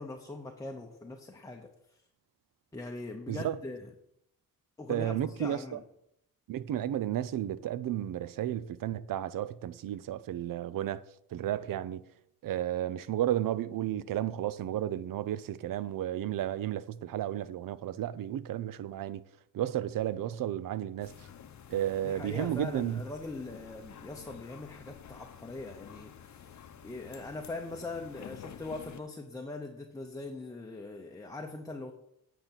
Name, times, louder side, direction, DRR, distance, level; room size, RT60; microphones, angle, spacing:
voice 1, 0.0-2.0 2.7-3.9 4.8-5.8 22.0-31.9, left 2 dB, 10° left, 0.8 m, -41 dB
voice 2, 4.9-5.8 6.5-11.0 11.3-12.0 12.4-19.2 19.5-21.3 21.7-23.0, right 11 dB, 60° right, 0.5 m, -33 dB
sound 1, 21.0-29.0, left 8 dB, 50° left, 0.8 m, -50 dB
9.3 x 5.8 x 5.8 m
cardioid pair, 125°, 38 cm